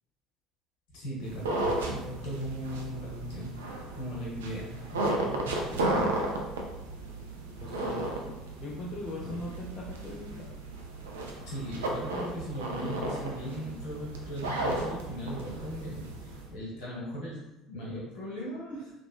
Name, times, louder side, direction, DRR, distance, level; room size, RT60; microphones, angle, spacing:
voice 1, 0.9-3.6 3.9-5.4 9.2-9.4 11.5-18.9, equal, 65° left, -6 dB, 1.0 m, -38 dB
sound 1, 1.2-16.5, right 2 dB, 75° right, 0.3 m, -34 dB
voice 2, 5.7-6.1 7.6-10.5, left 2 dB, 35° left, -5 dB, 0.4 m, -41 dB
2.8 x 2.1 x 2.3 m, 0.96 s
figure-of-eight pair, 60°, 0 cm